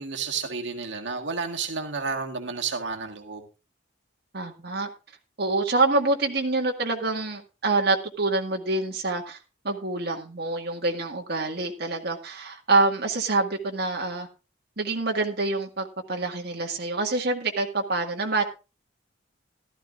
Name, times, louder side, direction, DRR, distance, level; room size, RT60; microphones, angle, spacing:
voice 1, 0.0-3.5, right 5 dB, 90° right, 2 dB, 1.7 m, -31 dB
voice 2, 4.3-4.9 5.4-9.4 9.6-14.3 14.8-18.4, right 3 dB, 60° right, 1 dB, 1.9 m, -26 dB
15.0 x 13.0 x 2.5 m, 0.30 s
head